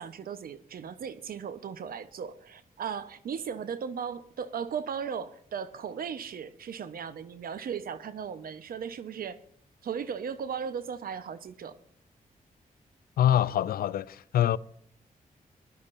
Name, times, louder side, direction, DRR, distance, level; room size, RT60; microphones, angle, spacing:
voice 1, 0.0-9.4 9.8-11.8, right 7 dB, 80° right, 1.0 m, -37 dB
voice 2, 13.2-14.6, left 11 dB, 90° left, 0.5 m, -25 dB
21.5 x 12.0 x 2.6 m
cardioid pair, 75°, 15 cm